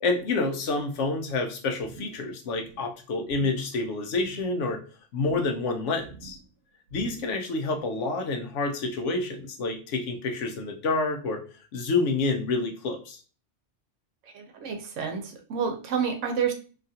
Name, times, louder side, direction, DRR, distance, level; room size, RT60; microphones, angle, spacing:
voice 1, 0.0-4.8 5.1-6.4 6.9-11.4 11.7-13.2, left 3 dB, 80° left, 4 dB, 1.0 m, -28 dB
sound 1, 1.8-2.3 2.5-2.9 3.3-3.8 4.1-4.6 5.2-5.7 6.0-6.5 6.9-7.4 7.8-7.9, right 5 dB, 65° right, 0.8 m, -45 dB
voice 2, 14.3-16.5, right 6 dB, 90° right, 4 dB, 1.0 m, -29 dB
2.8 x 2.4 x 2.7 m, 0.38 s
omnidirectional pair, 1.2 m